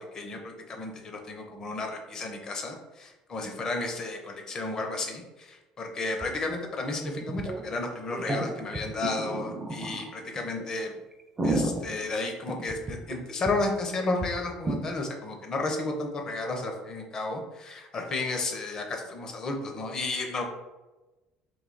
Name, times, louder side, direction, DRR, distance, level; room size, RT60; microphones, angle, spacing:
voice 1, 0.0-10.9 11.4-20.4, left 2 dB, 30° left, 3 dB, 0.6 m, -33 dB
sound 1, 6.2-6.3 6.5-6.6 7.2-7.6 8.1-10.1 10.6-10.7 11.1-13.1 13.4-13.5 13.8-13.9 14.2-14.3 14.6-14.8, right 2 dB, 15° right, 0.4 m, -31 dB
3.1 x 2.7 x 3.9 m, 1.1 s
cardioid pair, 160°, 2 cm